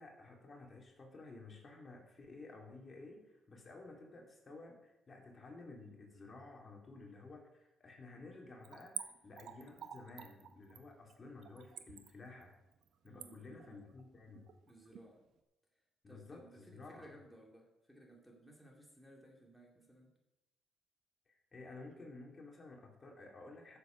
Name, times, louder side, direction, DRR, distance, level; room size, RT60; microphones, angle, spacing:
voice 1, 0.0-12.5 13.0-14.5 16.0-17.1 21.3-23.8, left 3 dB, 35° left, 0 dB, 2.8 m, -53 dB
Splash splatter / Trickle dribble, 8.6-15.1 15.4-15.5, right 8 dB, 70° right, 1.1 m, -49 dB
voice 2, 13.0-13.8 14.7-15.2 16.1-20.2, right 1 dB, ahead, 0 dB, 2.6 m, -59 dB
13.5 x 7.2 x 5.2 m, 0.94 s
cardioid pair, 90°, 0 cm